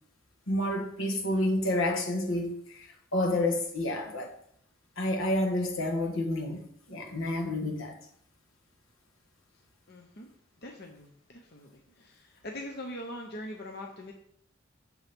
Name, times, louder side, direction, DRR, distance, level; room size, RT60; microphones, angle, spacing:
voice 1, 0.5-4.3 5.0-6.6 6.9-7.9, left 1 dB, 80° left, 1.6 m, -29 dB
voice 2, 9.9-10.3 10.6-11.7 12.0-14.1, left 1 dB, 50° left, 1.0 m, -42 dB
8.6 x 7.2 x 3.7 m
head